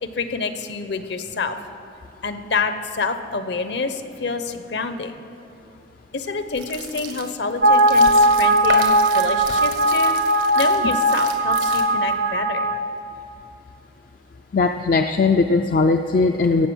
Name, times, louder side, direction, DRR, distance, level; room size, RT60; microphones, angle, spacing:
voice 1, 0.0-1.6 2.2-5.1 6.1-10.2 10.5-12.7, left 4 dB, 60° left, 9 dB, 0.8 m, -27 dB
sound 1, 6.5-12.2, right 5 dB, 85° right, 1.4 m, -34 dB
sound 2, 7.6-12.8, right 1 dB, 55° right, 0.6 m, -18 dB
voice 2, 14.5-16.7, left 4 dB, 45° left, 6 dB, 0.4 m, -19 dB
17.0 x 7.8 x 6.2 m, 3.0 s
head